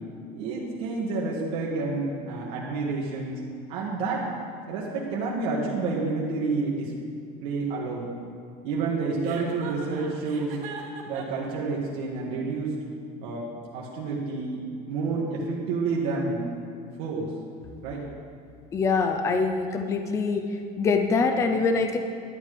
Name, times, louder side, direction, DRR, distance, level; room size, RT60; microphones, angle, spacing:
voice 1, 0.3-3.4 3.7-4.3 4.7-6.9 7.4-8.1 8.6-10.6 11.1-12.8 13.2-16.5 17.0-17.3 17.8-18.1, right 3 dB, 70° right, -4 dB, 1.9 m, -29 dB
Chuckle chortle, 9.2-11.5, right 6 dB, 40° right, 1.5 m, -40 dB
voice 2, 18.7-20.4 20.8-22.0, left 4 dB, 15° left, 6 dB, 0.5 m, -24 dB
12.0 x 9.5 x 5.0 m, 2.4 s
cardioid pair, 175°, 19 cm